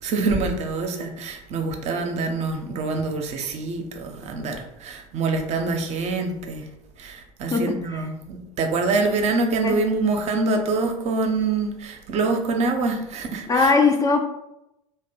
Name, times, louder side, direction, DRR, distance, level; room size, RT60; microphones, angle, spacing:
voice 1, 0.0-6.6 7.0-13.7, right 3 dB, 40° right, 4 dB, 0.5 m, -25 dB
voice 2, 7.5-8.1 9.6-9.8 13.5-14.3, left 4 dB, 20° left, 3 dB, 0.3 m, -20 dB
2.8 x 2.0 x 4.0 m, 0.86 s
figure-of-eight pair, 65°, 18 cm